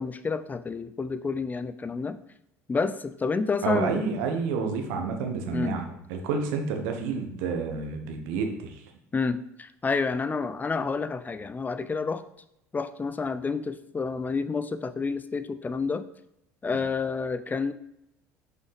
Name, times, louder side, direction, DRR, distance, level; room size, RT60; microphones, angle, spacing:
voice 1, 0.0-2.2 2.7-4.0 5.5-5.8 9.1-12.2 12.7-16.0 16.6-17.7, left 4 dB, 20° left, 12 dB, 0.5 m, -29 dB
voice 2, 3.6-8.8, right 5 dB, 65° right, 4 dB, 1.1 m, -29 dB
6.3 x 5.4 x 3.4 m, 0.81 s
figure-of-eight pair, 60°, 8 cm